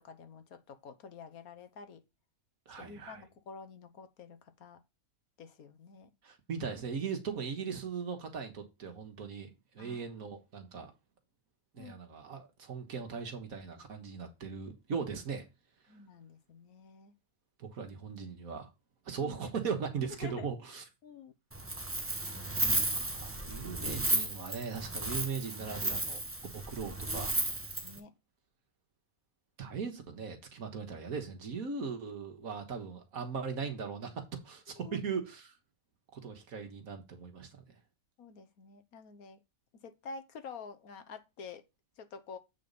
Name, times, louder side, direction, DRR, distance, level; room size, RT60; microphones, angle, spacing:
voice 1, 0.0-2.0 2.8-4.8 5.4-6.1 9.8-10.1 11.7-11.9 15.9-17.1 19.2-19.4 20.2-20.5 21.0-21.3 22.7-23.3 27.8-28.1 34.8-35.0 38.2-39.4 39.7-41.6 42.0-42.4, left 5 dB, 75° left, 1.5 m, -49 dB
voice 2, 2.7-3.2 6.2-10.9 11.7-15.5 17.6-18.7 19.1-20.8 22.7-26.2 26.5-27.3 29.6-35.6 36.1-37.8, right 6 dB, 70° right, 1.8 m, -39 dB
Wind, 21.5-28.0, right 2 dB, 10° right, 0.7 m, -34 dB
8.7 x 4.1 x 5.3 m
omnidirectional pair, 1.6 m